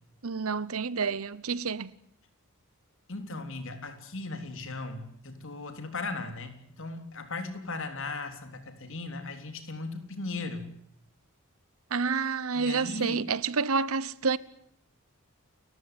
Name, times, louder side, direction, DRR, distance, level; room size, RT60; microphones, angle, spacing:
voice 1, 0.2-1.9 11.9-14.4, right 5 dB, 70° right, 0.9 m, -29 dB
voice 2, 3.1-10.7 12.6-13.2, left 3 dB, 60° left, 3.5 m, -37 dB
29.5 x 15.0 x 9.6 m
head